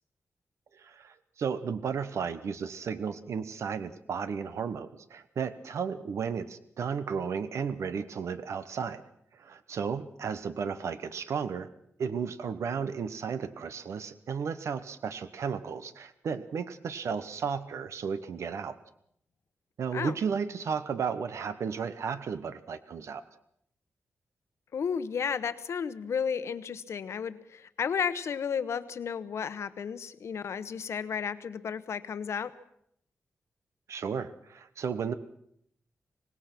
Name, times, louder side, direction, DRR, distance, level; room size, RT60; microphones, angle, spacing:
voice 1, 0.7-9.0 9.3-11.7 12.0-18.8 19.8-23.2 33.9-35.1, right 6 dB, 75° right, 12 dB, 1.0 m, -34 dB
voice 2, 24.7-32.5, left 7 dB, 70° left, 13 dB, 1.1 m, -33 dB
24.5 x 19.0 x 6.0 m, 0.71 s
wide cardioid pair, 170°, 5 cm